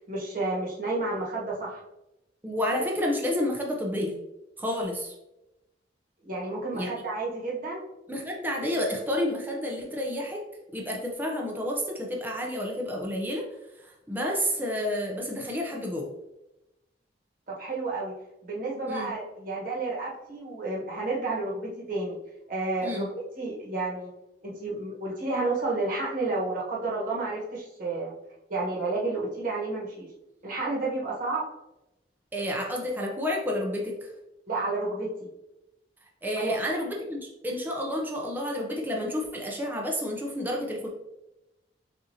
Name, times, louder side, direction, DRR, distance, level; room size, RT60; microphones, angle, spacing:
voice 1, 0.1-1.8 6.2-7.8 17.5-18.1 18.4-22.2 22.5-24.1 24.4-28.1 28.5-30.1 30.4-31.4 34.5-35.3 36.3-36.5, right 2 dB, 55° right, -5 dB, 1.3 m, -31 dB
voice 2, 2.4-4.2 4.6-5.1 6.7-6.9 8.1-10.4 10.7-13.4 13.8-16.1 18.9-19.1 22.8-23.1 32.3-34.1 36.2-40.9, left 1 dB, 10° right, -1 dB, 0.6 m, -30 dB
6.2 x 2.7 x 2.8 m, 0.92 s
head